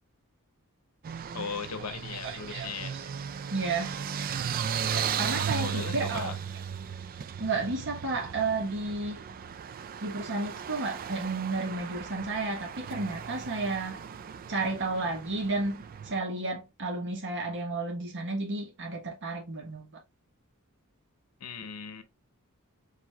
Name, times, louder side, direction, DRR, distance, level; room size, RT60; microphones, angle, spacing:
sound 1, 1.0-16.2, right 7 dB, 40° right, 0.3 m, -36 dB
voice 1, 1.3-3.0 5.6-6.3 21.4-22.0, left 5 dB, 85° left, 0.8 m, -38 dB
voice 2, 2.2-2.7 3.5-3.9 4.9-6.3 7.4-9.2 10.0-14.0 14.5-19.9, right 3 dB, 55° right, 1.3 m, -32 dB
4.5 x 4.1 x 2.4 m
head